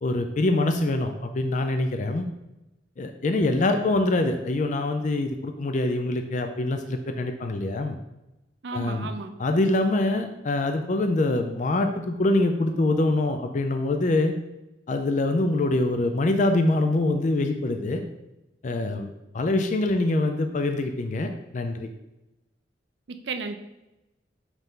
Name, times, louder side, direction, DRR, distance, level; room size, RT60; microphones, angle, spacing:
voice 1, 0.0-2.3 3.0-8.0 8.7-9.1 9.4-14.3 14.9-18.0 18.6-21.9, left 2 dB, 45° left, 6 dB, 0.4 m, -24 dB
voice 2, 8.6-9.3 23.1-23.6, right 3 dB, 70° right, 7 dB, 0.5 m, -33 dB
5.7 x 5.5 x 3.7 m, 0.97 s
head